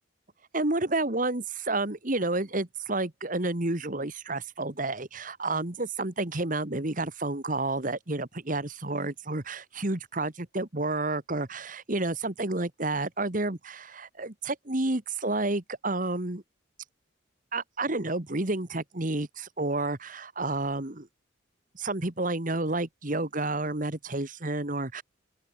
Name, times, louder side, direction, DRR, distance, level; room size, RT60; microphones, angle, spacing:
voice 1, 0.5-16.4 17.5-21.1 21.8-25.0, right 2 dB, 40° right, 1.7 m, -30 dB
open air
head